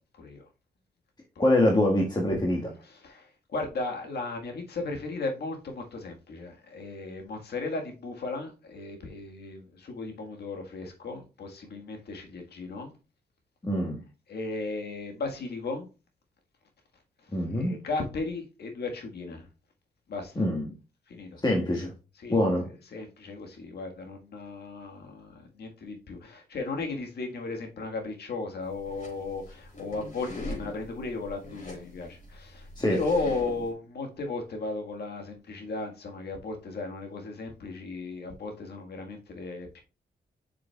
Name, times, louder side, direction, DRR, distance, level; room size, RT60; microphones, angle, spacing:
voice 1, 1.4-2.6 13.6-14.0 17.3-17.8 20.3-20.7 21.4-21.9 22.3-22.7 32.8-33.0, left 1 dB, 25° left, 1.6 m, -24 dB
voice 2, 2.8-12.9 14.3-15.9 17.5-19.5 20.1-20.4 21.1-21.4 22.2-22.4 22.9-39.8, left 3 dB, 75° left, 1.7 m, -35 dB
sound 1, 28.6-33.7, left 1 dB, 50° left, 4.2 m, -42 dB
7.4 x 6.1 x 2.4 m
cardioid pair, 65°, 17 cm